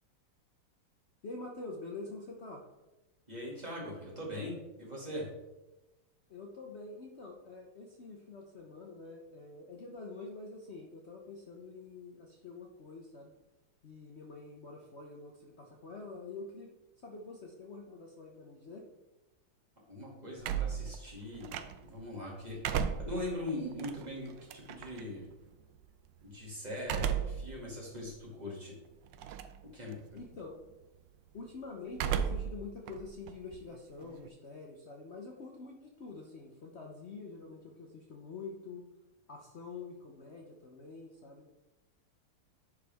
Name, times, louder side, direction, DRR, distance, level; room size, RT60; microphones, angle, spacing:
voice 1, 1.2-2.6 6.3-13.3 13.8-16.7 17.0-18.8 30.1-30.6 31.3-38.8 39.3-41.5, left 3 dB, 80° left, 0 dB, 0.6 m, -46 dB
voice 2, 3.3-5.3 19.9-21.6 21.8-22.6 23.0-25.3 26.2-28.7 29.7-30.0, left 1 dB, 20° right, -4 dB, 2.2 m, -41 dB
sound 1, 20.4-22.0 22.4-25.0 26.8-27.5 28.0-28.1 29.1-29.6 29.9-30.4 31.9-32.6 32.9-34.3, right 8 dB, 75° right, 1.1 m, -35 dB
10.5 x 4.9 x 3.5 m, 1.0 s
omnidirectional pair, 2.3 m